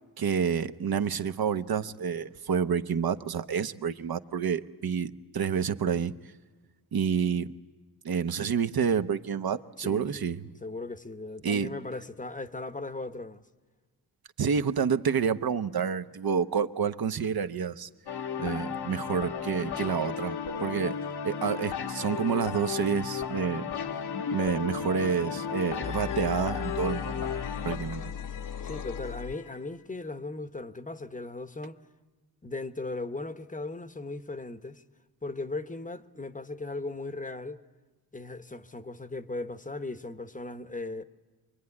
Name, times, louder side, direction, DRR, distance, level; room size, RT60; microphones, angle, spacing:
voice 1, 0.2-6.1 6.9-7.5 8.0-10.5 11.4-11.7 14.4-17.9 18.4-21.0 21.2-23.7 24.3-27.3 27.6-28.1, right 6 dB, 60° right, 0.9 m, -29 dB
voice 2, 9.8-10.2 10.6-13.4 28.6-31.8 32.4-34.8 35.2-37.6 38.1-41.0, left 2 dB, 20° left, 0.9 m, -37 dB
sound 1, 18.1-27.8, left 7 dB, 70° left, 1.3 m, -34 dB
sound 2, 24.1-24.5 24.8-29.8, left 8 dB, 50° left, 0.8 m, -38 dB
26.0 x 22.5 x 9.7 m
wide cardioid pair, 100°, 41 cm